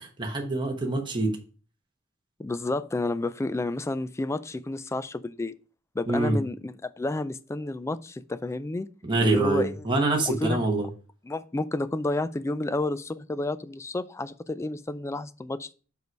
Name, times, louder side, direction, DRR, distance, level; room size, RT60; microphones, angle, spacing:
voice 1, 0.0-1.4 6.1-6.4 9.0-10.9, right 2 dB, 25° right, 1 dB, 1.0 m, -25 dB
voice 2, 2.4-5.5 5.9-8.9 9.2-9.9 10.3-10.6 11.2-15.7, left 2 dB, 15° left, 14 dB, 0.3 m, -30 dB
5.2 x 4.6 x 5.1 m, 0.37 s
head